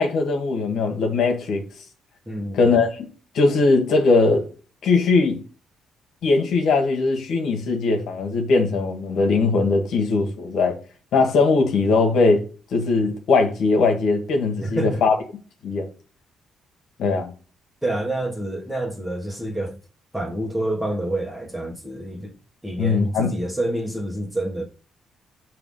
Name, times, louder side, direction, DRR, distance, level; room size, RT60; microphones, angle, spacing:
voice 1, 0.0-1.6 2.5-3.1 3.3-4.5 4.8-5.4 6.2-10.7 11.1-12.4 12.7-15.2 15.6-15.9 17.0-17.3 22.8-23.3, left 3 dB, 70° left, 1.3 m, -20 dB
voice 2, 2.3-2.7 14.6-15.0 17.8-19.8 20.1-22.3 22.6-24.6, right 1 dB, 5° right, 1.5 m, -28 dB
5.9 x 3.0 x 5.4 m
cardioid pair, 90°, 0 cm